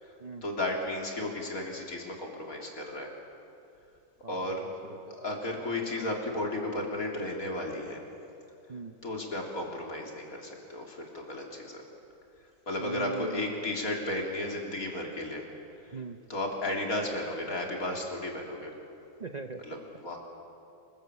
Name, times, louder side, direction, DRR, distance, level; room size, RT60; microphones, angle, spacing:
voice 1, 0.4-3.1 4.3-4.6 5.0-8.0 9.0-11.9 12.7-15.4 15.8-16.0 16.3-18.7 19.6-20.2, left 1 dB, 50° left, 0 dB, 4.0 m, -34 dB
voice 2, 4.2-5.2 8.7-8.9 12.8-13.5 15.9-16.2 19.2-19.6, right 4 dB, 40° right, 7 dB, 0.6 m, -40 dB
27.5 x 21.0 x 8.4 m, 2.6 s
omnidirectional pair, 1.9 m